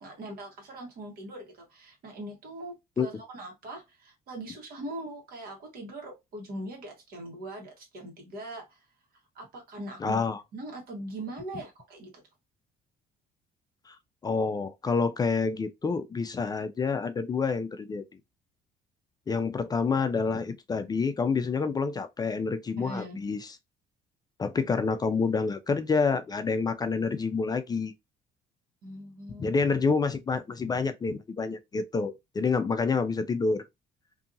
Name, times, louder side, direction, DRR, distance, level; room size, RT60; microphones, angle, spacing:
voice 1, 0.0-8.9 9.3-10.2 10.5-12.1 22.8-23.2 28.8-29.5, right 1 dB, 60° right, 1.3 m, -41 dB
voice 2, 10.0-10.4 13.9-14.0 14.2-18.0 19.3-23.4 24.4-27.9 29.4-33.6, left 4 dB, 25° left, 0.4 m, -28 dB
2.7 x 2.6 x 2.5 m
cardioid pair, 110°, 17 cm